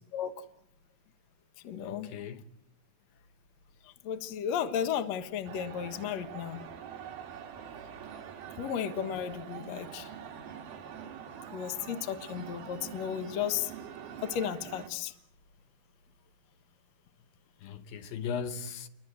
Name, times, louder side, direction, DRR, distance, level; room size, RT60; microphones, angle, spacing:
voice 1, 0.1-0.4 1.6-2.1 3.8-6.6 8.6-10.1 11.5-13.7 14.2-15.1, left 9 dB, 60° left, 2.2 m, -34 dB
voice 2, 1.8-2.4 17.6-18.9, left 6 dB, 75° left, 2.9 m, -38 dB
sound 1, 5.5-14.9, right 8 dB, 80° right, 3.9 m, -45 dB
29.0 x 23.5 x 7.9 m
omnidirectional pair, 4.2 m